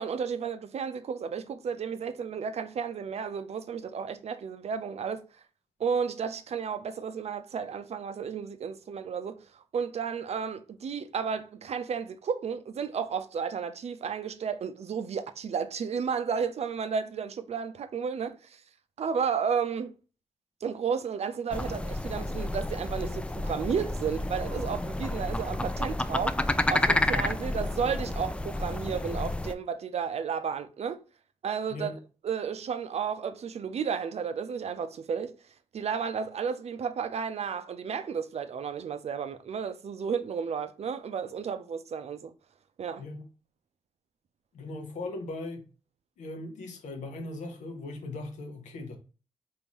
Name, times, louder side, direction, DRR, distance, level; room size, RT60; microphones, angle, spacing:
voice 1, 0.0-5.2 5.8-18.6 19.0-19.9 20.6-31.0 31.4-31.9 32.2-35.4 35.7-42.3 42.8-43.0, right 6 dB, 60° right, 0.5 m, -32 dB
sound 1, 21.5-29.5, left 1 dB, 10° left, 0.3 m, -30 dB
voice 2, 44.5-45.6 46.2-49.0, left 2 dB, 80° left, 0.8 m, -38 dB
3.7 x 2.6 x 3.0 m
supercardioid pair, 40°, 12 cm